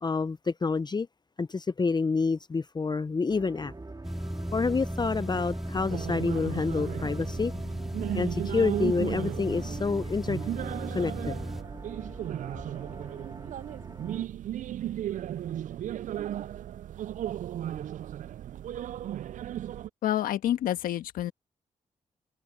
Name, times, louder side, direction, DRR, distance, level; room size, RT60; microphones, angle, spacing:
voice 1, 0.0-1.1 1.4-3.7 4.5-7.5 8.1-10.4 10.9-11.4, left 4 dB, 30° left, 0.6 m, -28 dB
sound 1, 3.3-14.3, right 2 dB, 25° right, 3.3 m, -44 dB
sound 2, 4.0-11.6, equal, ahead, 2.1 m, -36 dB
sound 3, 5.9-19.9, right 11 dB, 65° right, 0.4 m, -35 dB
voice 2, 20.0-21.3, left 12 dB, 85° left, 1.4 m, -28 dB
supercardioid pair, 45°, 14 cm